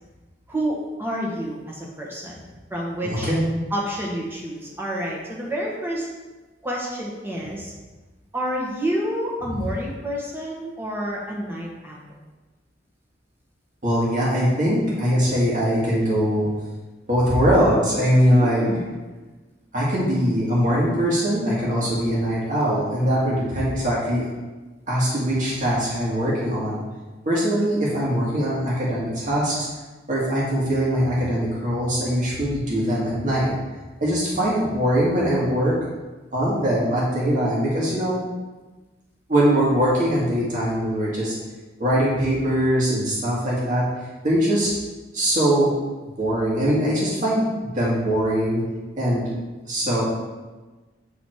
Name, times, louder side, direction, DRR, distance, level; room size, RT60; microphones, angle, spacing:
voice 1, 0.5-2.4 2.7-3.3 3.7-6.1 6.6-7.7 8.3-12.0 18.3-19.0 34.3-34.6, equal, 10° right, -3 dB, 1.4 m, -29 dB
voice 2, 3.0-3.4 13.8-16.5 17.1-18.7 19.7-24.2 24.9-26.8 27.2-29.6 30.1-33.5 34.0-35.7 36.3-38.2 39.3-41.3 41.8-43.8 44.2-44.7 45.1-45.7 46.2-48.6 49.0-49.3 49.7-50.0, equal, 45° right, -6 dB, 2.0 m, -21 dB
8.4 x 4.1 x 4.6 m, 1.2 s
head